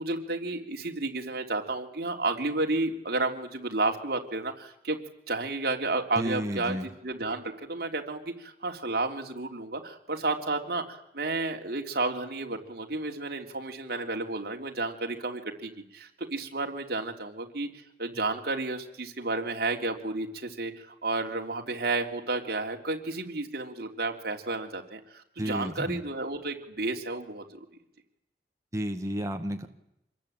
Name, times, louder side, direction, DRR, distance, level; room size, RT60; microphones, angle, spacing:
voice 1, 0.0-5.0 5.3-6.8 7.0-17.7 18.0-27.6, right 2 dB, 60° right, 3 dB, 3.4 m, -32 dB
voice 2, 6.2-6.9 25.4-26.0 28.7-29.7, equal, 20° right, 4 dB, 1.6 m, -32 dB
26.5 x 21.5 x 9.0 m, 0.80 s
head